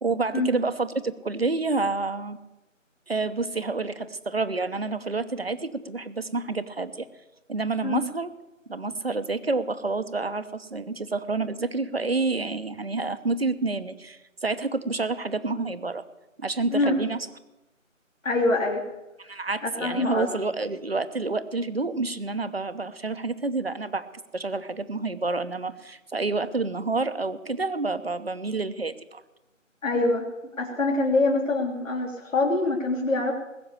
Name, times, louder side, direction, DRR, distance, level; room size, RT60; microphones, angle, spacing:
voice 1, 0.0-2.4 3.1-7.1 7.5-8.3 8.7-16.0 16.4-17.3 19.2-24.1 24.3-29.2, right 3 dB, 50° right, 13 dB, 1.0 m, -28 dB
voice 2, 18.2-18.8 19.2-19.3 19.6-20.3 29.8-30.2 30.6-33.3, left 2 dB, 75° left, -4 dB, 3.3 m, -24 dB
20.0 x 6.8 x 8.4 m, 1.0 s
figure-of-eight pair, 170°, 39 cm